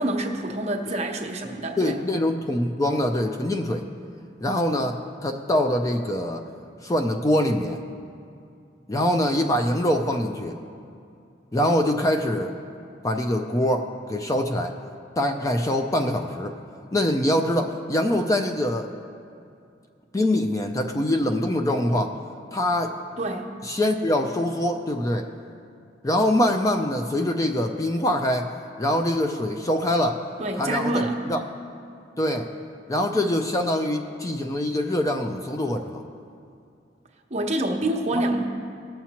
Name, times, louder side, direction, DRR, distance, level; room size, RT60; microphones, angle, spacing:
voice 1, 0.0-2.0 23.2-23.5 30.4-31.2 37.3-38.5, right 1 dB, 40° right, 2 dB, 1.0 m, -26 dB
voice 2, 1.8-3.9 4.4-6.4 6.8-7.8 8.9-10.6 11.5-12.5 13.0-14.7 15.2-16.6 16.9-18.9 20.1-22.2 22.5-22.9 23.6-25.3 26.0-28.5 28.8-30.2 30.6-31.4 32.2-32.5 32.9-36.1, left 1 dB, 20° left, 5 dB, 0.4 m, -24 dB
18.5 x 7.2 x 2.9 m, 2.5 s
head